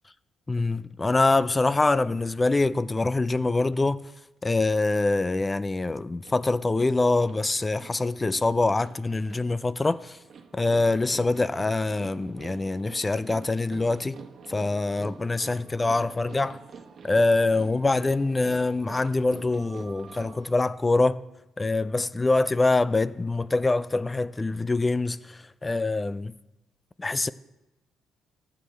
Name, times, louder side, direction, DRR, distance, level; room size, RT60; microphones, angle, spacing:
voice 1, 0.5-4.0 4.4-10.2 10.5-14.2 14.5-16.6 17.0-21.2 21.6-26.4 27.0-27.3, left 2 dB, 25° left, 0.4 m, -24 dB
sound 1, 6.2-20.6, right 6 dB, 55° right, 1.2 m, -47 dB
14.5 x 9.0 x 3.3 m
supercardioid pair, 60°, 0 cm